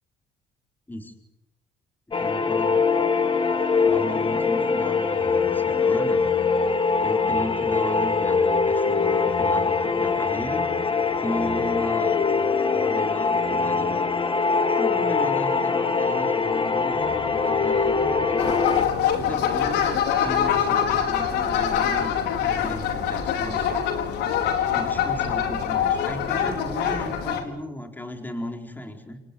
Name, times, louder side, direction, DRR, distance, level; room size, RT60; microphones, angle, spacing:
sound 1, 2.1-18.8, left 4 dB, 30° left, 1.9 m, -23 dB
voice 1, 2.1-3.1 3.8-6.2 7.0-10.7 11.2-12.2 12.7-14.0 14.7-18.6 19.1-23.8 24.7-29.2, equal, 10° left, 3 dB, 4.5 m, -36 dB
sound 2, 7.3-16.7 17.0-20.7, left 4 dB, 50° left, 4.8 m, -32 dB
sound 3, 18.4-27.4, left 8 dB, 85° left, 4.8 m, -24 dB
30.0 x 17.5 x 9.6 m, 0.84 s
cardioid pair, 110°, 17 cm